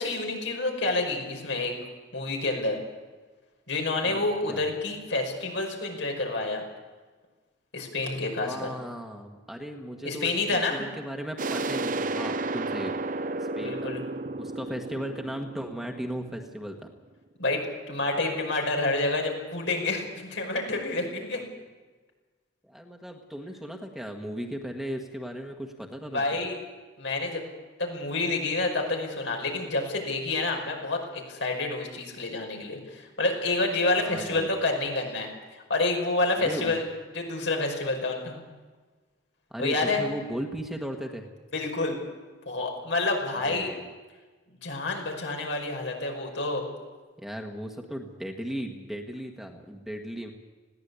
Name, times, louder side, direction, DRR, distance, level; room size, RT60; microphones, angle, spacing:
voice 1, 0.0-1.7 2.1-2.8 3.7-6.6 7.7-8.7 10.0-10.9 13.6-14.0 17.4-17.6 17.9-21.4 26.1-26.5 27.0-27.4 27.8-35.3 35.5-36.8 37.1-38.4 39.6-40.0 41.5-42.0 42.5-43.7 44.6-46.6, left 2 dB, 80° left, 2 dB, 5.4 m, -28 dB
voice 2, 4.0-4.6 8.4-13.0 13.3-13.9 14.4-16.9 21.3-21.4 22.6-26.4 34.0-34.5 36.4-36.8 39.5-41.3 43.3-43.9 47.2-50.3, equal, ahead, 2 dB, 1.5 m, -37 dB
sound 1, 11.4-16.9, right 2 dB, 45° right, 0.6 m, -32 dB
20.5 x 16.5 x 8.3 m, 1.3 s
head